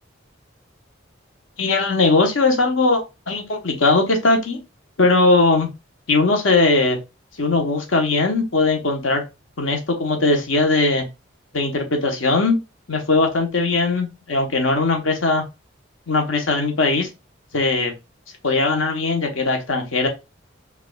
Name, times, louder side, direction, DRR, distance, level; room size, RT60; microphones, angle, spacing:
voice 1, 1.6-4.6 5.0-5.7 6.1-7.0 7.4-9.2 9.6-11.0 11.5-12.6 12.9-15.4 16.1-17.1 17.5-17.9 18.4-20.1, left 3 dB, 85° left, 4 dB, 1.0 m, -19 dB
4.6 x 2.4 x 2.3 m, 0.25 s
head